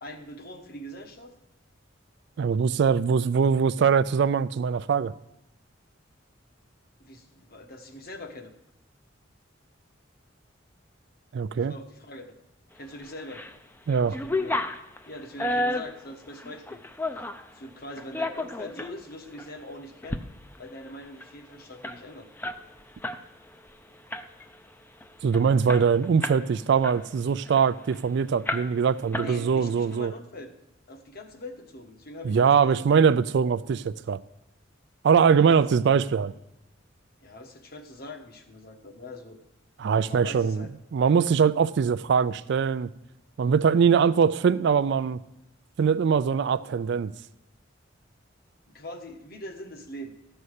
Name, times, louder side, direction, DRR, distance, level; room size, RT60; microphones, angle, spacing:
voice 1, 0.0-1.3 7.0-8.5 11.6-12.3 12.7-13.6 14.0-14.5 15.1-16.8 17.5-20.2 20.6-22.3 29.2-30.5 30.9-32.9 35.4-35.7 37.2-39.4 40.0-40.7 48.7-50.1, left 1 dB, 50° left, 5 dB, 1.2 m, -42 dB
voice 2, 2.4-5.1 11.3-11.7 13.9-14.2 25.2-30.1 32.2-34.2 35.0-36.3 39.8-40.7 40.9-42.9 43.4-45.2 45.8-47.1, right 6 dB, 60° right, 14 dB, 0.3 m, -22 dB
sound 1, 13.0-13.6 13.9-17.5 18.0-18.9 19.4-19.5 19.9-20.2 20.5-20.6 20.9-23.2 23.5-23.7 24.1-24.6 25.0-25.1 25.3-26.5 26.8-28.0 28.5-28.9 29.1-29.8, left 2 dB, 10° left, 0.5 m, -32 dB
14.0 x 5.5 x 6.5 m, 0.90 s
head